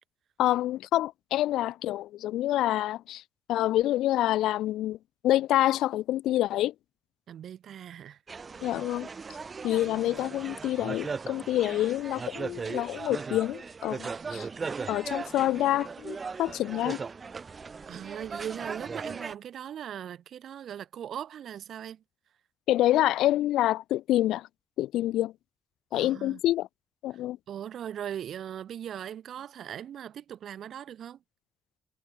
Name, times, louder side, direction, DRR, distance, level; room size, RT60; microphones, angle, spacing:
voice 1, 0.4-3.2 3.5-5.0 5.2-6.7 8.6-9.1 9.6-14.5 14.9-17.0 22.7-24.5 24.8-25.3 25.9-26.7 27.0-27.4, left 14 dB, 80° left, 0.6 m, -27 dB
voice 2, 7.3-8.2 8.7-8.8 17.9-22.0 25.9-26.4 27.1-27.2 27.5-31.2, right 9 dB, 70° right, 0.8 m, -39 dB
sound 1, 8.3-19.4, right 5 dB, 45° right, 1.0 m, -38 dB
hypercardioid pair, 45°, 0 cm